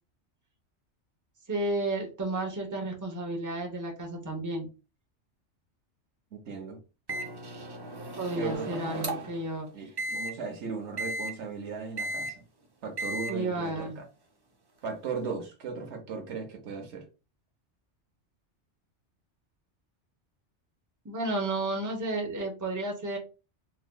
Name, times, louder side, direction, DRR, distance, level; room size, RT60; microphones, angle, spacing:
voice 1, 1.5-4.7 8.2-9.7 13.3-14.0 21.0-23.2, right 2 dB, 20° right, 0.7 m, -32 dB
voice 2, 6.3-6.8 8.4-9.1 9.7-12.4 12.8-14.0 14.8-17.1, right 5 dB, 75° right, 1.0 m, -37 dB
Microwave oven, 7.1-9.4 10.0-10.3 11.0-11.3 12.0-12.3 13.0-13.3, right 1 dB, 40° right, 0.3 m, -35 dB
4.1 x 2.7 x 2.2 m
omnidirectional pair, 1.2 m